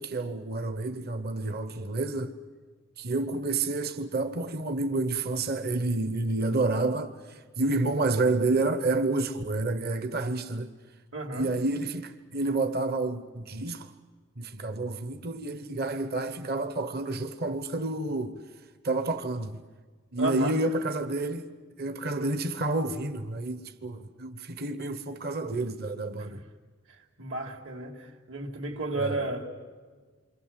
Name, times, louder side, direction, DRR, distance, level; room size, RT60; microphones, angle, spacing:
voice 1, 0.0-2.4 3.0-10.7 11.3-13.9 14.4-18.4 18.8-19.6 20.1-21.5 21.8-26.4 29.0-29.2, right 2 dB, 55° right, 1.1 m, -29 dB
voice 2, 11.1-11.5 20.2-20.5 26.2-26.4 26.9-29.5, right 2 dB, 75° right, 3.3 m, -33 dB
28.0 x 24.5 x 7.6 m
head